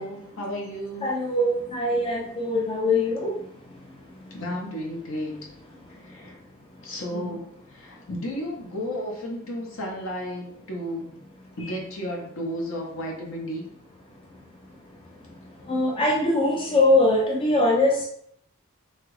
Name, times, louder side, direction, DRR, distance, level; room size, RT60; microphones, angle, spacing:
voice 1, 0.0-1.0 4.3-5.3 5.9-6.4 6.8-11.2 11.6-13.6, equal, 65° left, 0 dB, 0.8 m, -33 dB
voice 2, 1.0-3.3 7.1-7.3 15.7-18.1, left 2 dB, 25° left, -1 dB, 0.3 m, -22 dB
2.9 x 2.4 x 3.1 m, 0.69 s
head